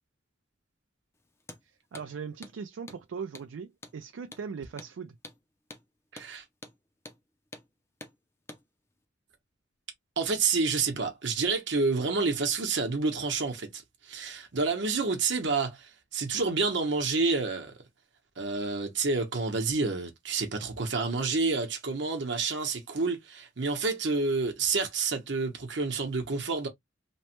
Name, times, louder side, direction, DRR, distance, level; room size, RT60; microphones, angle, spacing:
Hammer, 1.4-1.6 1.9-2.1 2.4-2.6 2.9-3.0 3.3-3.5 3.8-4.0 4.3-4.5 4.8-4.9 5.2-5.4 5.7-5.8 6.2-6.3 6.6-6.8 7.1-7.2 7.5-7.7 8.0-8.2 8.5-8.6, left 2 dB, 15° left, 0.4 m, -46 dB
voice 1, 1.9-5.2, right 6 dB, 85° right, 0.4 m, -39 dB
voice 2, 6.1-6.4 10.2-17.8 18.4-26.7, right 4 dB, 65° right, 0.8 m, -29 dB
3.1 x 2.1 x 2.9 m
head